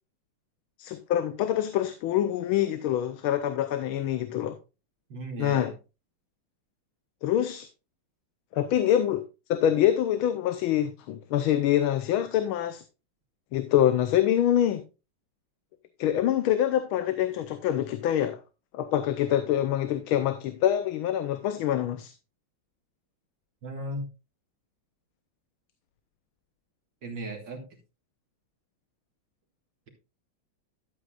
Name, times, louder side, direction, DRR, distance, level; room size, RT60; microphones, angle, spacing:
voice 1, 0.8-4.6 5.4-5.7 7.2-7.7 8.5-9.2 9.5-12.8 13.5-14.8 16.0-18.4 18.7-22.1, left 11 dB, 90° left, 1.6 m, -25 dB
voice 2, 5.1-5.7 23.6-24.1 27.0-27.6, right 1 dB, 60° right, 2.5 m, -35 dB
12.5 x 7.9 x 2.4 m
omnidirectional pair, 2.2 m